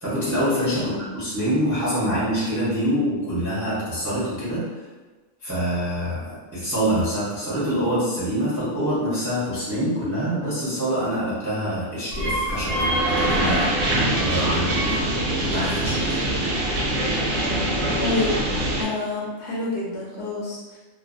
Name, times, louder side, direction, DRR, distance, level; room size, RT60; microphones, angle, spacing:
voice 1, 0.0-4.9 5.4-13.7 14.2-15.0 15.3-16.2, equal, 20° right, -10 dB, 0.4 m, -25 dB
sound 1, 12.1-18.8, right 1 dB, 75° right, 0.9 m, -23 dB
voice 2, 18.0-18.3 18.8-20.8, left 2 dB, 65° left, -5 dB, 0.8 m, -28 dB
2.5 x 2.1 x 2.4 m, 1.3 s
omnidirectional pair, 1.4 m